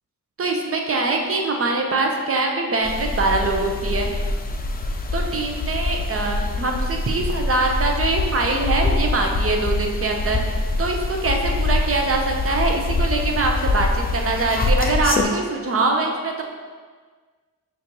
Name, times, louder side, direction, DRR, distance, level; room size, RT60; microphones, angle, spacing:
voice 1, 0.4-4.1 5.1-16.4, right 3 dB, 40° right, 1 dB, 0.7 m, -23 dB
sound 1, 2.8-15.2, left 2 dB, 25° left, 0.4 m, -24 dB
6.2 x 2.6 x 2.9 m, 1.5 s
cardioid pair, 60°, 37 cm